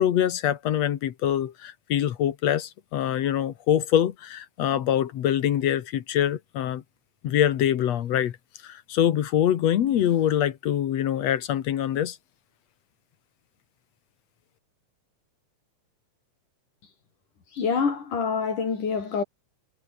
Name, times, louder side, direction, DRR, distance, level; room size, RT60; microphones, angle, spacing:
voice 1, 0.0-6.8 7.2-8.3 8.6-12.2, left 10 dB, 60° left, 2.3 m, -24 dB
voice 2, 17.5-19.2, left 5 dB, 80° left, 6.0 m, -26 dB
omnidirectional pair, 3.6 m